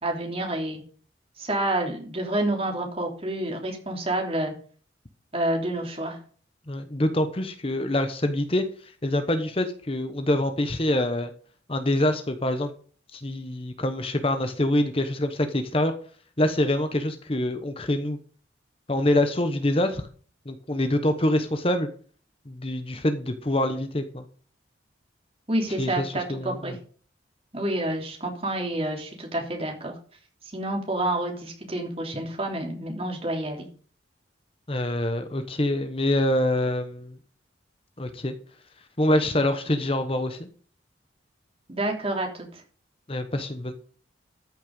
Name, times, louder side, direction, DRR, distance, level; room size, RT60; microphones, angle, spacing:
voice 1, 0.0-0.8 1.4-4.5 5.3-6.2 25.5-26.7 27.5-29.9 30.5-33.7 41.7-42.6, right 1 dB, 30° right, 1 dB, 3.3 m, -28 dB
voice 2, 6.7-11.3 11.7-12.7 13.1-15.9 16.4-18.2 18.9-20.0 20.5-21.9 22.5-24.2 25.8-26.8 34.7-37.2 38.0-38.3 39.0-40.5 43.1-43.7, left 1 dB, 30° left, 8 dB, 1.0 m, -25 dB
13.5 x 6.4 x 5.4 m, 0.43 s
head